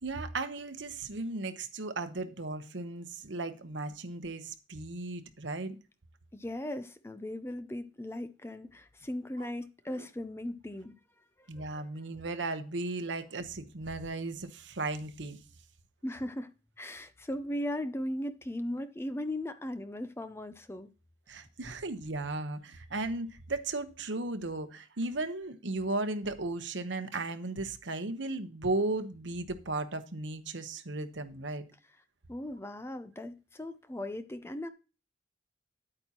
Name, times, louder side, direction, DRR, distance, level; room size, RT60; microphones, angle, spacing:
voice 1, 0.0-5.8 9.4-9.5 10.0-10.1 11.5-15.4 21.3-31.6, right 2 dB, 70° right, 1.0 m, -36 dB
voice 2, 6.3-11.0 11.4-11.9 16.0-20.9 32.3-34.7, left 1 dB, 15° left, 0.5 m, -38 dB
9.8 x 8.7 x 2.9 m
head